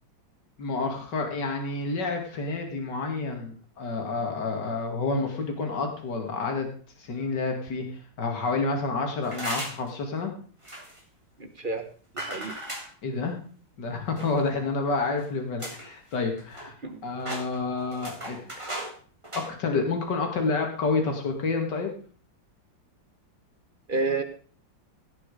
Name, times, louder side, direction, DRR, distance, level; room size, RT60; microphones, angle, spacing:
voice 1, 0.6-6.7 7.0-7.8 8.2-10.3 13.0-13.4 13.8-16.7 17.0-18.4 19.3-21.9, left 3 dB, 65° left, 3 dB, 2.9 m, -29 dB
sound 1, 9.2-9.9 10.6-11.0 12.2-12.9 14.2-14.6 15.2-15.3 15.6-15.9 16.2-16.9 17.2-18.9 19.2-19.5, right 1 dB, 15° right, 3.1 m, -36 dB
voice 2, 11.4-11.9 12.1-12.5 16.8-17.0 23.9-24.2, right 3 dB, 30° right, 7 dB, 1.2 m, -29 dB
17.5 x 6.3 x 5.0 m, 0.43 s
omnidirectional pair, 2.0 m